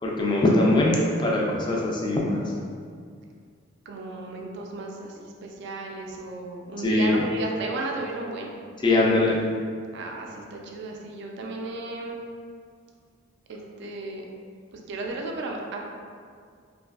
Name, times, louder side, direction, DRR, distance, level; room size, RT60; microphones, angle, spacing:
voice 1, 0.0-2.4 6.8-7.1 8.8-9.4, left 2 dB, 25° left, -3 dB, 0.3 m, -22 dB
voice 2, 3.9-8.5 9.9-12.2 13.5-14.2 14.7-15.8, right 2 dB, 60° right, 0 dB, 0.3 m, -34 dB
2.6 x 2.3 x 2.3 m, 2.1 s
head